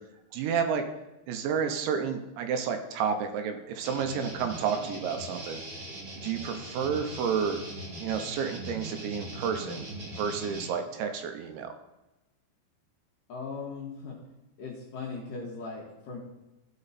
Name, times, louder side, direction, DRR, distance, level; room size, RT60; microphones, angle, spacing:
voice 1, 0.3-0.8 1.3-5.6 6.2-7.6 8.0-9.9 10.2-11.7, right 7 dB, 80° right, 7 dB, 2.9 m, -30 dB
sound 1, 3.8-10.7, right 1 dB, 50° right, 1.9 m, -40 dB
voice 2, 13.3-14.2 14.6-16.2, left 4 dB, 65° left, -3 dB, 2.3 m, -38 dB
15.0 x 5.4 x 4.1 m, 0.99 s
omnidirectional pair, 5.5 m